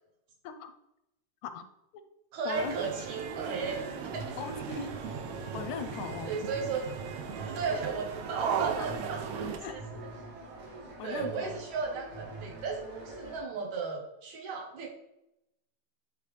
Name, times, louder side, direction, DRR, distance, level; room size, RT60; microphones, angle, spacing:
voice 1, 2.3-4.3 6.2-7.0 7.4-9.8 11.0-14.9, right 5 dB, 75° right, 0 dB, 2.4 m, -35 dB
sound 1, 2.5-9.6, right 7 dB, 90° right, 1.3 m, -37 dB
sound 2, 3.6-13.4, right 2 dB, 55° right, 2.1 m, -45 dB
voice 2, 4.4-5.0 5.5-6.3 8.8-8.9 9.6-9.8 11.0-11.5, left 6 dB, 85° left, 9 dB, 2.0 m, -39 dB
10.0 x 3.5 x 3.2 m, 0.84 s
omnidirectional pair, 3.4 m